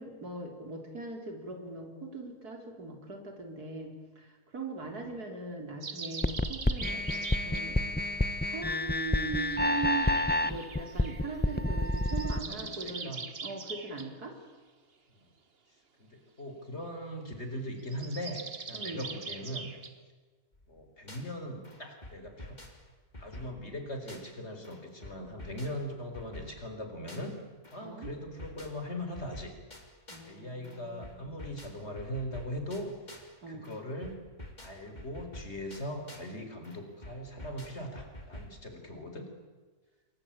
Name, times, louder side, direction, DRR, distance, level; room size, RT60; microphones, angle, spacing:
voice 1, 0.0-8.1 8.5-10.1 10.4-13.1 13.4-14.3 18.7-19.0 27.8-28.1 30.1-31.2 33.4-33.7, right 3 dB, 85° right, 3 dB, 4.4 m, -40 dB
sound 1, 5.8-7.7 9.3-11.2 11.9-14.1 17.8-19.9, right 5 dB, 40° right, 1.5 m, -42 dB
sound 2, 6.2-12.4, left 1 dB, 10° left, 0.6 m, -29 dB
voice 2, 12.3-13.2 15.1-15.3 16.0-19.7 20.7-22.6 23.2-27.4 27.7-29.5 30.2-32.9 33.5-34.2 34.6-39.3, equal, 45° left, 6 dB, 4.7 m, -40 dB
sound 3, 20.5-21.4 21.6-24.4 24.6-27.4 27.6-30.4 30.6-33.4 33.6-36.4 36.6-38.6, left 1 dB, 30° left, 3.6 m, -48 dB
28.5 x 22.0 x 8.9 m, 1.4 s
omnidirectional pair, 1.6 m